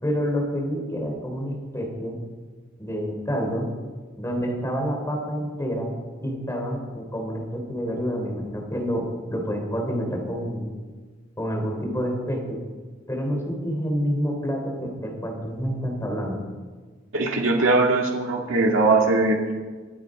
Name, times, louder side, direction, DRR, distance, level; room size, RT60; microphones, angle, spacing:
voice 1, 0.0-2.2 2.8-3.7 4.2-5.9 6.2-10.7 11.4-12.6 13.1-16.4, equal, 15° left, 1 dB, 3.6 m, -28 dB
voice 2, 17.1-19.5, right 3 dB, 80° right, 1 dB, 2.1 m, -20 dB
23.5 x 9.5 x 5.1 m, 1.4 s
head